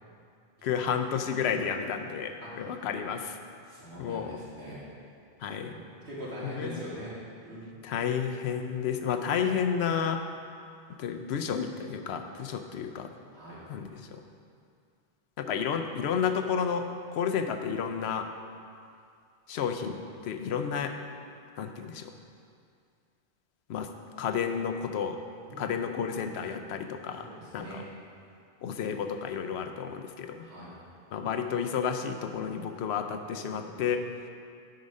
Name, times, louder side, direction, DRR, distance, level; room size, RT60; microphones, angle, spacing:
voice 1, 0.6-3.4 4.0-4.4 5.4-5.7 6.6-6.8 7.8-10.2 11.0-13.1 13.7-14.2 15.4-16.9 17.1-18.3 19.5-20.9 21.6-22.1 23.7-23.9 24.2-25.2 25.6-27.3 27.5-27.8 28.6-30.5 31.1-34.0, left 7 dB, 85° left, 6 dB, 0.8 m, -31 dB
voice 2, 2.4-2.7 3.6-4.9 5.6-5.8 6.1-7.2 7.4-7.7 13.3-13.6 25.5-25.8 27.2-27.8 30.4-30.7 33.3-33.7, equal, 85° right, -8 dB, 2.3 m, -42 dB
7.7 x 4.9 x 5.3 m, 2.3 s
omnidirectional pair, 1.1 m